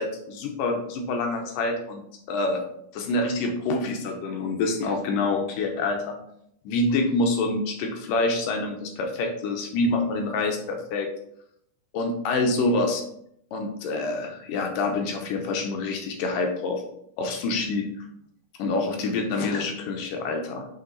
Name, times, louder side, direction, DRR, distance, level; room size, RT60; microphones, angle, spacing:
voice 1, 0.0-2.0 2.3-2.6 2.9-6.2 6.7-11.1 11.9-13.0 13.5-16.8 17.2-17.9 18.6-20.7, left 2 dB, 75° left, 3 dB, 2.3 m, -26 dB
8.2 x 3.4 x 3.9 m, 0.72 s
omnidirectional pair, 4.0 m